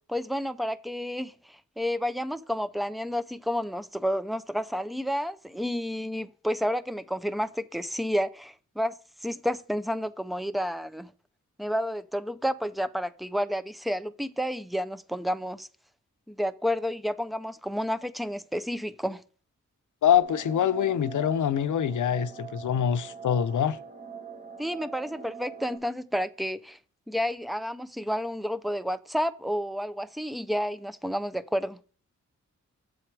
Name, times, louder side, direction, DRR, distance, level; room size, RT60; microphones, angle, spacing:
voice 1, 0.1-9.0 9.2-11.1 11.6-15.7 16.3-19.2 24.6-26.8 27.1-31.8, equal, ahead, 0.3 m, -30 dB
voice 2, 20.0-23.8, left 9 dB, 80° left, 0.5 m, -24 dB
sound 1, 20.2-25.8, right 6 dB, 25° right, 1.0 m, -43 dB
7.8 x 4.5 x 4.7 m
wide cardioid pair, 155°, 30 cm